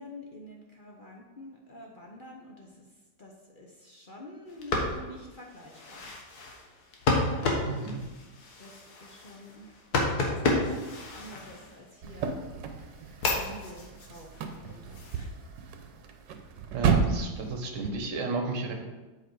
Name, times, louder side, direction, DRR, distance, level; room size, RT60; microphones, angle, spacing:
voice 1, 0.0-2.9 3.2-6.1 7.3-8.3 8.6-9.7 10.2-12.4 13.3-15.4, left 1 dB, 45° left, -1 dB, 0.7 m, -48 dB
sound 1, 4.5-12.1 12.6-15.2, left 2 dB, 65° left, 1.7 m, -32 dB
voice 2, 7.6-8.0 16.7-18.7, right 3 dB, 50° right, 3 dB, 1.3 m, -32 dB
sound 2, 12.0-17.9, right 6 dB, 85° right, 1.4 m, -32 dB
7.8 x 5.1 x 4.7 m, 1.2 s
omnidirectional pair, 1.9 m